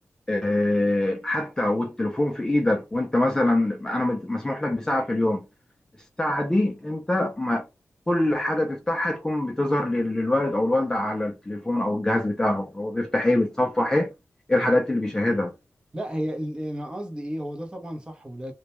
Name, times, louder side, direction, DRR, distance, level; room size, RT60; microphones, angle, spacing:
voice 1, 0.3-5.5 6.2-7.6 8.1-14.1 14.5-15.5, left 1 dB, 15° left, 0.4 m, -24 dB
voice 2, 15.9-18.5, equal, 20° right, 0.7 m, -32 dB
2.2 x 2.1 x 2.9 m
wide cardioid pair, 125°, 5 cm